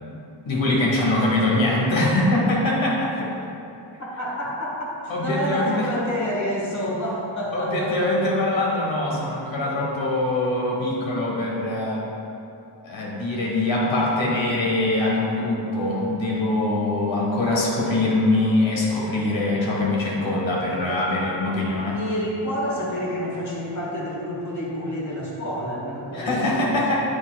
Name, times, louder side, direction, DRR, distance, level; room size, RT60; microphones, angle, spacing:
voice 1, 0.4-3.3 5.1-5.9 7.5-12.0 12.8-22.0 26.1-27.0, left 2 dB, 80° left, -4 dB, 1.5 m, -23 dB
voice 2, 4.2-8.3 20.8-21.0 21.3-27.0, equal, 35° left, -6 dB, 1.5 m, -29 dB
8.9 x 6.9 x 2.3 m, 2.8 s
wide cardioid pair, 165°, 46 cm